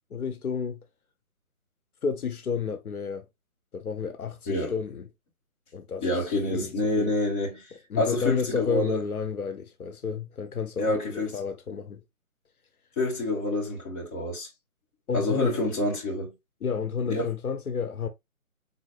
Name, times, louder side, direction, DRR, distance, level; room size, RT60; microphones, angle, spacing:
voice 1, 0.1-0.8 2.0-3.3 3.7-5.1 5.7-6.7 7.0-7.1 7.9-12.0 15.1-15.6 16.6-18.1, left 6 dB, 80° left, 0.8 m, -31 dB
voice 2, 6.0-7.6 8.0-9.0 10.8-11.3 13.0-14.5 15.1-16.3 17.1-17.3, left 1 dB, 25° left, 2.2 m, -27 dB
4.2 x 3.9 x 2.5 m
figure-of-eight pair, 155°, 43 cm